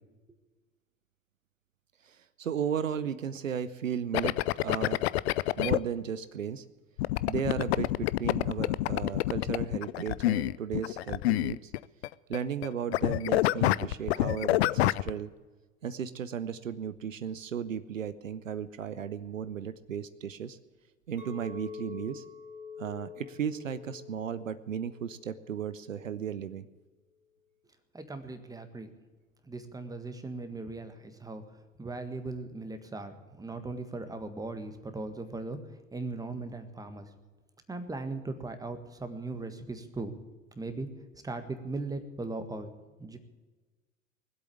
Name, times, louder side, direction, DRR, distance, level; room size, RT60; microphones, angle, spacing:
voice 1, 2.0-5.1 5.6-6.6 7.3-11.7 12.3-15.3 15.8-20.6 21.1-22.2 22.8-26.7, right 8 dB, 80° right, 14 dB, 0.7 m, -35 dB
sound 1, 4.1-5.8 7.0-12.1 12.3-12.7 12.9-15.1, left 16 dB, 55° left, 0.5 m, -27 dB
Chink clink, 21.2-25.5 25.9-26.3, left 6 dB, 90° left, 2.0 m, -46 dB
voice 2, 27.9-28.9 29.4-31.4 31.8-35.6 35.9-37.1 37.7-40.1 40.5-40.9 41.2-42.7 43.0-43.2, right 3 dB, 10° right, 8 dB, 1.6 m, -38 dB
20.5 x 8.1 x 8.5 m, 1.2 s
figure-of-eight pair, 75°, 39 cm